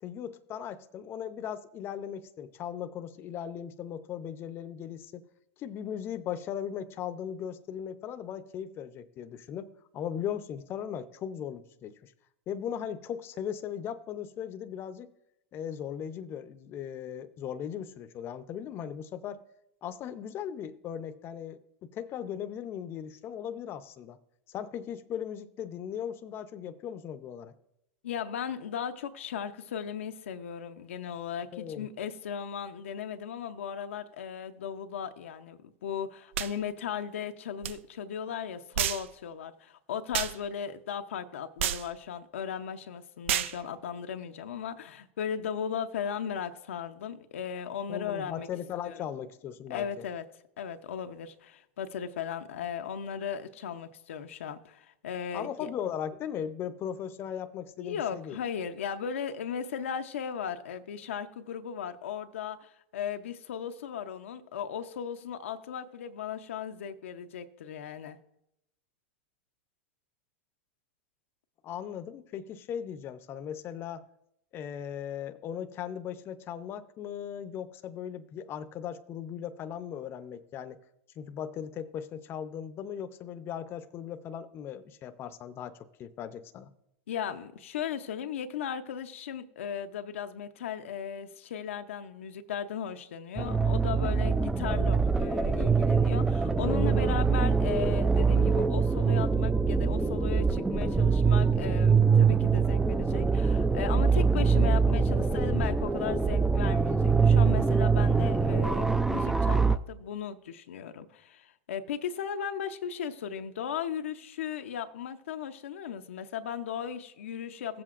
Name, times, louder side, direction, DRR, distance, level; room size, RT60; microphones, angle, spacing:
voice 1, 0.0-5.2 5.6-9.7 9.9-12.1 12.5-15.1 15.5-19.4 19.8-21.6 21.9-24.2 24.5-27.5 31.5-31.9 47.9-50.0 55.3-58.4 71.6-74.1 74.5-80.8 81.2-86.7, left 9 dB, 35° left, 11 dB, 0.6 m, -38 dB
voice 2, 28.0-48.5 48.9-49.1 49.7-50.2 50.6-55.5 57.8-68.2 87.1-117.8, left 8 dB, 90° left, 6 dB, 0.6 m, -37 dB
sound 1, 36.3-36.5 37.6-37.8 38.8-39.1 40.1-40.4 41.6-41.9 43.3-43.6, right 10 dB, 80° right, 0.4 m, -29 dB
sound 2, 93.4-109.8, right 5 dB, 5° right, 0.3 m, -24 dB
16.0 x 7.7 x 2.5 m, 0.82 s
hypercardioid pair, 115°, 7 cm